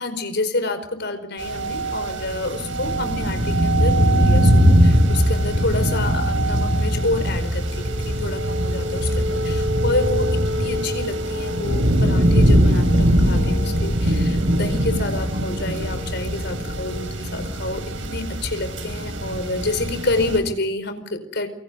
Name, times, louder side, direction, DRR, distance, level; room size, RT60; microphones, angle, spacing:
voice 1, 0.0-21.5, left 2 dB, 60° left, 9 dB, 4.9 m, -28 dB
sound 1, 1.4-20.4, equal, 90° right, 6.4 m, -21 dB
28.5 x 24.0 x 5.4 m, 0.72 s
head